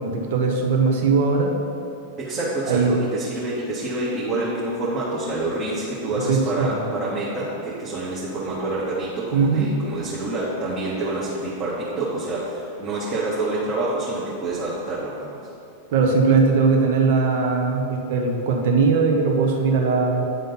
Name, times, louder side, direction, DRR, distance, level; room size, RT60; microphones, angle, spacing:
voice 1, 0.0-1.5 2.7-2.9 6.1-6.8 9.3-9.7 15.9-20.2, right 4 dB, 50° right, 1 dB, 1.1 m, -20 dB
voice 2, 2.2-15.4, right 2 dB, 30° right, -8 dB, 1.5 m, -27 dB
9.9 x 3.7 x 5.5 m, 2.7 s
figure-of-eight pair, 90°, 0 cm